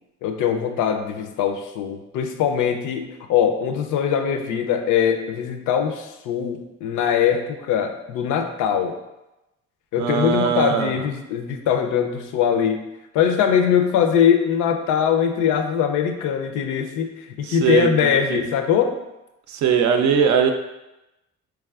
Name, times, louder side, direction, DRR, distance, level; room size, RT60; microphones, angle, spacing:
voice 1, 0.2-9.0 9.9-12.9 13.1-19.0, left 8 dB, 85° left, 6 dB, 0.5 m, -22 dB
voice 2, 10.0-11.1 17.4-18.4 19.5-20.5, right 7 dB, 70° right, 6 dB, 0.5 m, -20 dB
3.4 x 3.1 x 2.3 m, 0.96 s
cardioid pair, 90°, 30 cm